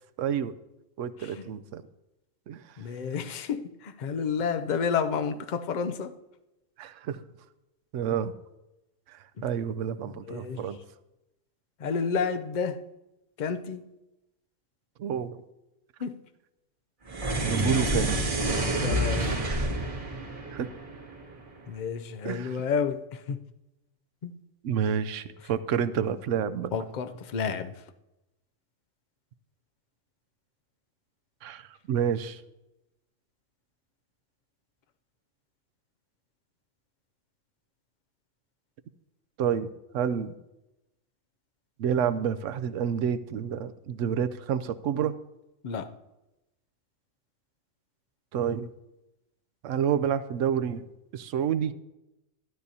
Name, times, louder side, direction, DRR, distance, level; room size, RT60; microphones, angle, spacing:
voice 1, 0.2-0.5 1.0-1.8 2.5-2.6 6.8-7.2 7.9-8.3 9.1-10.8 15.0-15.4 17.4-18.6 19.2-19.7 20.5-20.7 22.2-22.6 24.6-26.7 31.4-32.4 39.4-39.7 39.9-40.3 41.8-45.2 48.3-48.7 49.6-50.8 51.1-51.7, right 8 dB, 75° right, 0.9 m, -29 dB
voice 2, 1.2-1.5 2.8-6.1 9.4-9.5 10.0-10.7 11.8-12.8 13.4-13.9 16.0-16.2 18.8-19.5 21.7-23.4 24.2-24.4 26.7-27.7 45.6-45.9, left 6 dB, 50° left, 0.5 m, -30 dB
sound 1, 17.1-21.5, right 1 dB, 40° right, 2.6 m, -28 dB
12.5 x 11.5 x 2.7 m
omnidirectional pair, 1.3 m